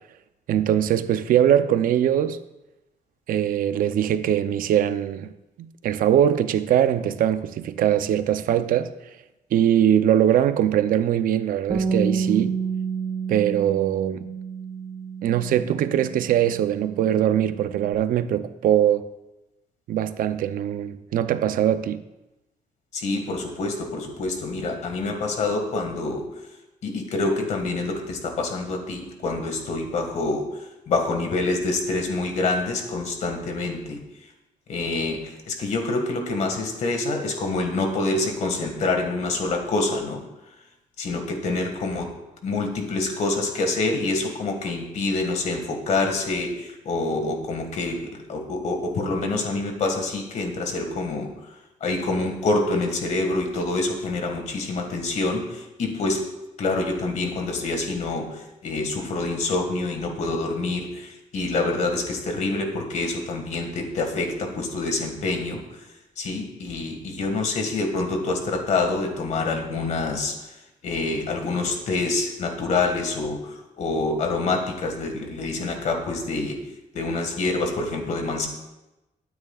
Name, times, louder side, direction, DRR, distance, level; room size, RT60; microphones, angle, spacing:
voice 1, 0.5-2.4 3.3-5.3 5.6-8.9 9.5-12.6 13.3-14.3 15.2-19.1 19.9-22.0, right 10 dB, 90° right, 0.6 m, -21 dB
Bass guitar, 11.7-17.9, right 5 dB, 30° right, 1.1 m, -30 dB
voice 2, 22.9-26.2 26.8-30.5 30.9-34.0 34.7-40.2 41.0-42.1 42.4-51.3 51.8-56.2 56.6-65.6 66.2-70.3 70.8-76.6 76.9-78.5, left 3 dB, 55° left, 1.9 m, -26 dB
21.5 x 9.4 x 2.4 m
wide cardioid pair, 175°, 14 cm